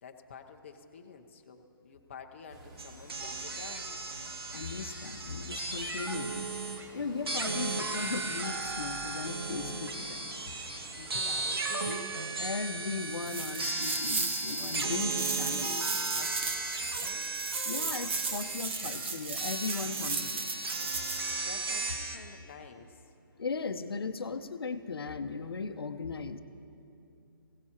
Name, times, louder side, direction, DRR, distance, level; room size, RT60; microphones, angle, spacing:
voice 1, 0.0-3.9 10.9-12.1 16.2-17.4 21.4-23.0, left 6 dB, 30° left, 4 dB, 0.7 m, -49 dB
sound 1, 2.5-11.6, right 1 dB, 15° right, 0.7 m, -52 dB
sound 2, 2.8-6.9 7.3-22.2, right 3 dB, 90° right, 1.7 m, -36 dB
voice 2, 4.5-6.5 6.9-10.3 12.4-15.8 17.6-20.7 23.4-26.4, left 4 dB, 90° left, 9 dB, 0.9 m, -37 dB
sound 3, 13.2-21.3, right 4 dB, 30° right, 1.0 m, -36 dB
20.0 x 17.0 x 2.9 m, 2.7 s
hypercardioid pair, 175°, 12 cm